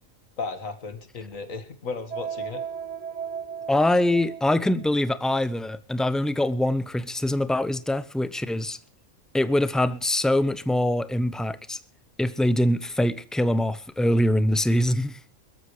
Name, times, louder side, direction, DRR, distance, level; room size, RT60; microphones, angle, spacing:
voice 1, 0.4-2.6, left 4 dB, 70° left, 2.2 m, -35 dB
sound 1, 2.1-4.9, right 7 dB, 35° right, 0.7 m, -35 dB
voice 2, 3.7-8.8 9.3-11.8 12.2-15.2, left 1 dB, ahead, 0.4 m, -23 dB
22.5 x 13.5 x 3.2 m
omnidirectional pair, 1.4 m